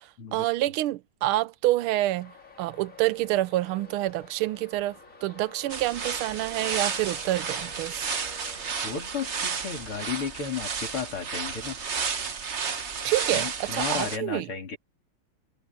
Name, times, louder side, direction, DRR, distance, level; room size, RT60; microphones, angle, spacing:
voice 1, 0.0-2.3 2.6-8.1 13.0-14.5, right 16 dB, 85° right, 1.5 m, -27 dB
Traffic noise roadway noise, 2.0-10.2, left 3 dB, 35° left, 3.9 m, -50 dB
sound 1, 5.7-14.2, right 5 dB, 40° right, 1.3 m, -32 dB
voice 2, 8.8-11.8 13.3-14.8, left 6 dB, 85° left, 4.1 m, -33 dB
omnidirectional pair, 2.3 m